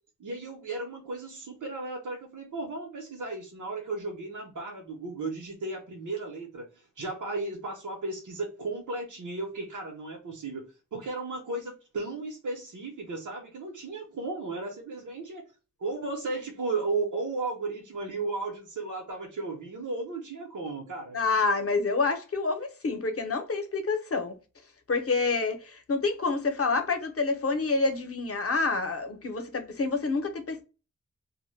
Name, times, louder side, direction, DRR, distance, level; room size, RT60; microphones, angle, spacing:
voice 1, 0.2-15.4 15.8-21.2, right 3 dB, 90° right, 0.7 m, -35 dB
voice 2, 21.1-24.3 24.9-30.6, left 3 dB, 50° left, 0.6 m, -28 dB
2.1 x 2.1 x 3.1 m
wide cardioid pair, 85°, 30 cm